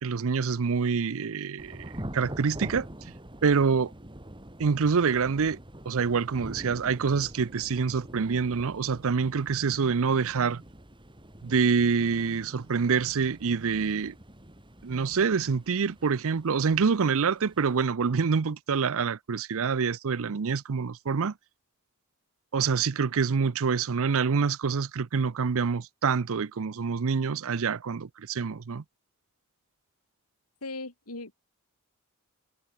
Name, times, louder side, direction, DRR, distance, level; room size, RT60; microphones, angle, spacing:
voice 1, 0.0-2.9 3.4-3.9 4.6-5.6 5.9-10.6 11.4-14.1 14.8-21.3 22.5-28.8, right 5 dB, 65° right, 0.6 m, -26 dB
Thunder / Rain, 1.6-17.8, right 1 dB, 20° right, 3.9 m, -45 dB
voice 2, 30.6-31.4, left 2 dB, 80° left, 4.2 m, -38 dB
head